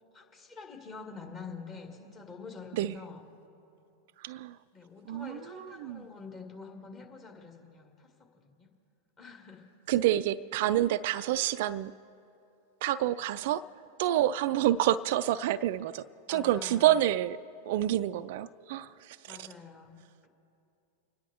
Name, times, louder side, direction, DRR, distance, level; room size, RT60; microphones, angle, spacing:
voice 1, 0.1-3.2 4.7-8.7 9.2-9.7 16.3-16.9 19.3-20.3, left 4 dB, 25° left, 1 dB, 2.2 m, -47 dB
voice 2, 4.2-4.6 5.1-6.0 9.9-11.9 12.8-13.6 14.0-17.4 17.7-19.5, right 13 dB, 50° right, 15 dB, 0.3 m, -28 dB
30.0 x 10.0 x 3.6 m, 2.7 s
figure-of-eight pair, 90°, 0 cm